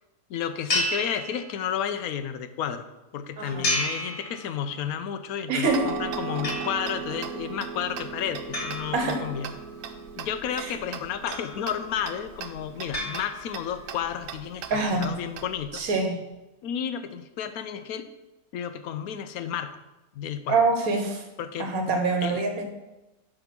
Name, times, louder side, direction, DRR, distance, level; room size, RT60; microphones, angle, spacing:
voice 1, 0.3-2.9 3.1-9.5 10.2-15.8 16.6-18.1 18.5-19.8 20.1-20.6 21.4-21.7 22.2-22.4, left 8 dB, 80° left, 10 dB, 1.0 m, -32 dB
sound 1, 0.7-1.9 3.6-4.9 6.4-7.2 8.5-9.7 11.3-12.0 12.9-13.8, left 1 dB, 50° left, 1.7 m, -32 dB
voice 2, 3.4-3.7 5.5-5.9 8.9-9.2 10.5-10.7 14.7-15.2 15.7-16.2 20.5-21.2 21.6-22.6, right 3 dB, 75° right, 4 dB, 1.5 m, -25 dB
Tick-tock, 5.6-15.9, right 6 dB, 90° right, 1.2 m, -37 dB
8.8 x 3.5 x 5.9 m, 1.0 s
omnidirectional pair, 1.6 m